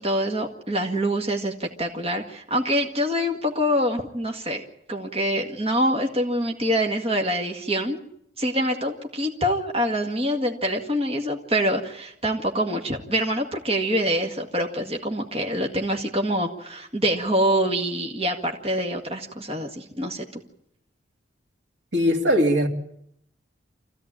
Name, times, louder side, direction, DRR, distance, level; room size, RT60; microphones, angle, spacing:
voice 1, 0.0-4.6 4.9-8.0 8.4-20.4, equal, 30° right, 2.0 m, -25 dB
voice 2, 21.9-22.7, equal, 75° right, 2.7 m, -20 dB
26.0 x 15.5 x 8.9 m
head